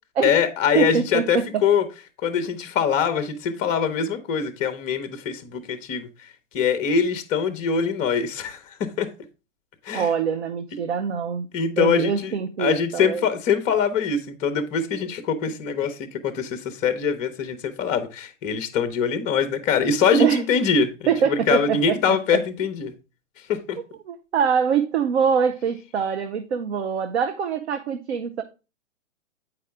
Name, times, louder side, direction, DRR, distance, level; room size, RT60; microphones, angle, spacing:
voice 1, 0.2-1.8 2.2-6.1 6.5-9.1 9.8-10.1 11.5-22.9 23.5-23.8, left 6 dB, 20° left, 0.7 m, -23 dB
voice 2, 0.7-1.6 9.9-11.5 11.8-13.2 20.2-20.4 21.1-22.4 24.1-28.4, right 7 dB, 60° right, 0.7 m, -24 dB
8.3 x 4.8 x 3.4 m
figure-of-eight pair, 120°, 38 cm